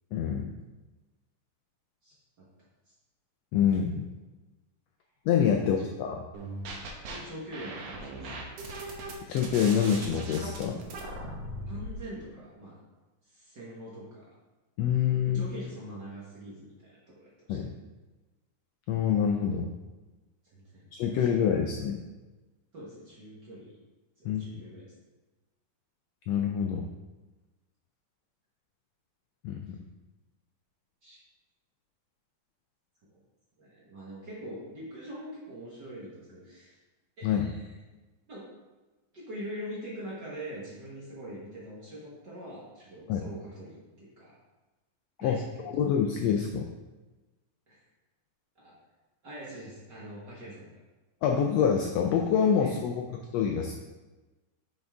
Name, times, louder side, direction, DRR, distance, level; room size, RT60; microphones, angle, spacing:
voice 1, 0.1-0.5 3.5-4.1 5.3-6.2 9.3-10.8 14.8-15.5 17.5-17.7 18.9-19.7 20.9-22.0 24.2-24.4 26.3-26.9 29.4-29.8 37.2-37.5 43.1-43.2 45.2-45.4 45.6-46.6 51.2-53.7, left 8 dB, 80° left, 3 dB, 1.5 m, -26 dB
voice 2, 2.0-2.5 5.5-6.0 7.1-8.6 11.7-12.8 13.2-14.3 15.3-17.7 20.5-20.9 21.2-21.3 22.7-23.8 24.2-24.9 31.0-31.2 33.1-33.2 33.6-36.8 37.2-37.7 38.3-38.5 39.1-44.4 45.2-45.5 47.7-47.8 48.6-48.7 49.2-50.8 52.6-52.8, equal, 50° right, -6 dB, 1.4 m, -44 dB
sound 1, 6.3-7.2 7.5-11.9, right 2 dB, 65° right, 1.9 m, -39 dB
6.6 x 5.9 x 3.5 m, 1.2 s
omnidirectional pair, 3.4 m